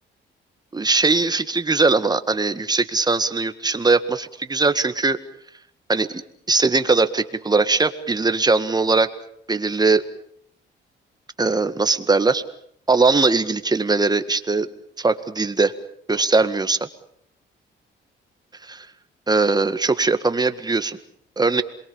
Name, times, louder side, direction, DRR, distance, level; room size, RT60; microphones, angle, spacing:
voice 1, 0.7-5.2 5.9-6.2 6.5-9.1 9.5-10.0 11.4-12.4 12.9-14.7 15.0-15.7 16.1-16.8 18.6-18.9 19.3-21.0 21.4-21.6, right 3 dB, 20° right, 11 dB, 1.9 m, -20 dB
27.0 x 22.5 x 7.3 m, 0.67 s
cardioid pair, 90°, 20 cm